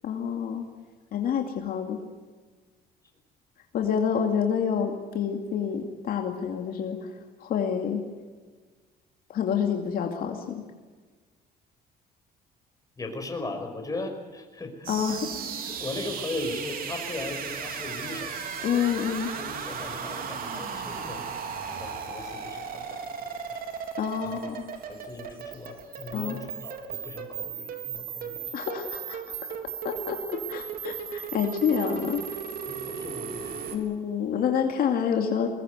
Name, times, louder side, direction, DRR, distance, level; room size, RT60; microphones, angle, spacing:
voice 1, 0.0-0.7 1.1-2.0 3.7-7.1 7.4-8.0 9.3-10.6 14.9-15.3 18.6-19.3 24.0-24.6 26.1-26.4 28.5-29.4 29.8-32.2 33.7-35.5, left 7 dB, 60° left, 3 dB, 2.5 m, -28 dB
voice 2, 13.0-14.9 15.6-18.4 18.9-19.0 19.3-21.2 21.7-23.6 24.2-24.3 24.9-28.5 32.7-33.7, left 2 dB, 20° left, 4 dB, 5.4 m, -38 dB
sound 1, 14.8-33.8, right 7 dB, 60° right, 3.7 m, -36 dB
22.0 x 20.5 x 8.1 m, 1.4 s
cardioid pair, 110°, 17 cm